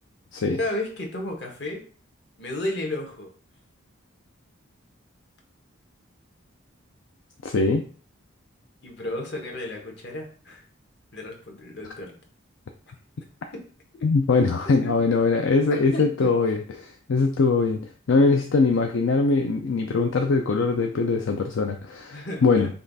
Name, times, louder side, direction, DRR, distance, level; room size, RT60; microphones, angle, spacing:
voice 1, 0.6-1.8 2.4-3.3 8.8-10.6 11.1-12.1 13.5-13.6 14.6-14.9 15.7-16.3 22.1-22.7, left 1 dB, 55° left, 0 dB, 1.2 m, -33 dB
voice 2, 7.4-7.8 14.0-17.8 18.1-22.7, left 4 dB, 70° left, 4 dB, 0.5 m, -22 dB
5.4 x 2.4 x 4.0 m, 0.42 s
head